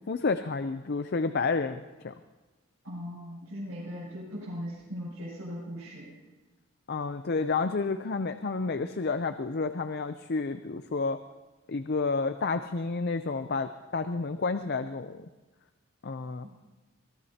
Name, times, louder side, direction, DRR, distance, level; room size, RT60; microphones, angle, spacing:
voice 1, 0.1-2.1 6.9-11.2 11.7-15.3 16.0-16.4, left 4 dB, 50° left, 9 dB, 0.5 m, -30 dB
voice 2, 2.8-6.1, equal, 90° right, -8 dB, 7.1 m, -39 dB
23.0 x 18.0 x 2.9 m, 1.2 s
head